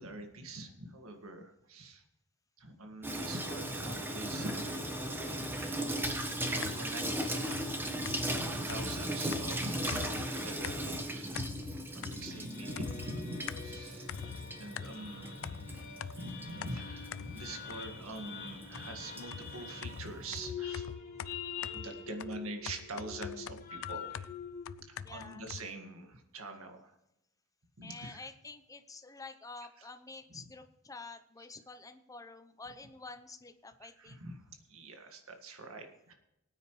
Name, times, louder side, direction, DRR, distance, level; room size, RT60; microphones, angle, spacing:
voice 1, 0.0-2.0 2.6-4.9 5.4-5.9 6.5-7.3 7.9-11.4 11.9-14.1 14.4-20.9 21.7-24.3 24.8-27.0 27.8-28.2 29.8-29.9 30.3-30.4 33.8-36.1, right 2 dB, 80° right, 5 dB, 1.9 m, -45 dB
Water tap faucet / Sink (filling or washing), 3.0-20.5, right 1 dB, 10° right, 1.3 m, -38 dB
sound 1, 6.0-7.0 7.5-10.3 10.6-11.1 11.3-12.5 12.8-15.1 15.4-18.1 18.7-25.7, left 7 dB, 65° left, 0.4 m, -44 dB
sound 2, 11.5-24.8, left 6 dB, 40° left, 2.3 m, -45 dB
voice 2, 25.0-25.4 27.8-34.2, left 3 dB, 15° left, 9 dB, 0.8 m, -49 dB
18.5 x 9.6 x 3.2 m, 0.86 s
head